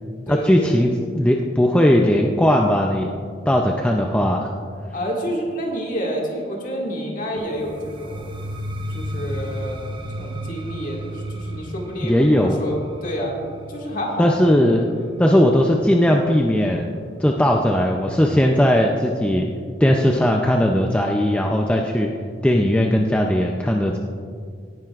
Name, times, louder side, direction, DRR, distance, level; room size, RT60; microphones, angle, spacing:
voice 1, 0.3-3.1 3.5-4.5 12.0-12.6 14.2-14.9 15.2-19.5 19.8-22.1 22.4-24.0, equal, 5° left, 1 dB, 0.4 m, -18 dB
voice 2, 4.9-8.3 8.9-13.4 13.7-14.3, equal, 45° left, -2 dB, 2.0 m, -28 dB
sound 1, 7.4-17.2, equal, 25° right, 0.8 m, -34 dB
17.5 x 10.5 x 2.4 m, 2.1 s
head